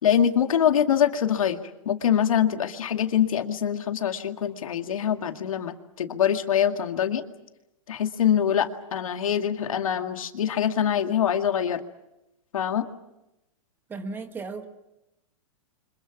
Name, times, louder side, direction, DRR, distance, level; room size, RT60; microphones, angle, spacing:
voice 1, 0.0-7.2 7.9-11.8 12.5-12.9, left 9 dB, 85° left, 6 dB, 2.2 m, -24 dB
voice 2, 13.9-14.7, right 3 dB, 10° right, 8 dB, 1.5 m, -35 dB
29.5 x 26.0 x 6.0 m, 0.90 s
hypercardioid pair, 160°, 17 cm